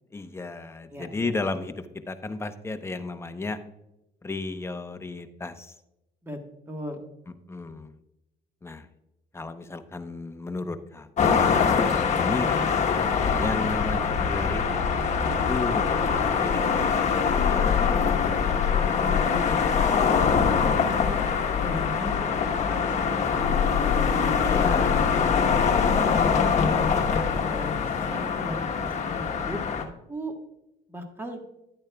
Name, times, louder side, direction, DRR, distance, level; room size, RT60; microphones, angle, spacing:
voice 1, 0.1-3.6 4.2-5.7 7.5-7.9 8.6-8.9 9.3-11.5 12.2-12.5 13.4-17.7 24.4-25.1, left 3 dB, 15° left, 8 dB, 0.7 m, -34 dB
voice 2, 0.9-1.3 6.2-6.4 6.7-7.0 12.1-12.6 18.8-19.7 20.6-21.2 21.6-24.7 25.0-25.4 26.0-30.3 30.9-31.4, equal, 15° right, 4 dB, 1.4 m, -37 dB
sound 1, 11.2-29.8, left 6 dB, 45° left, 1.1 m, -24 dB
sound 2, 13.0-27.4, left 7 dB, 70° left, 0.7 m, -31 dB
11.0 x 8.6 x 2.3 m, 0.90 s
cardioid pair, 110°, 17 cm